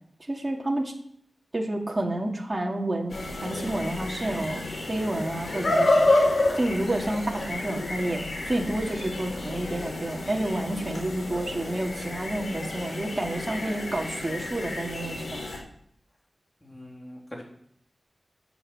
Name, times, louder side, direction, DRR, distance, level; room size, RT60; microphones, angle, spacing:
voice 1, 0.3-0.9 1.5-3.2 3.4-6.1 6.6-15.4, right 1 dB, 30° right, 0 dB, 2.5 m, -29 dB
sound 1, 3.1-15.6, left 2 dB, 85° left, 4.6 m, -29 dB
voice 2, 16.6-17.4, left 1 dB, 15° left, -2 dB, 3.6 m, -42 dB
14.5 x 7.8 x 7.7 m, 0.68 s
wide cardioid pair, 95°, 0 cm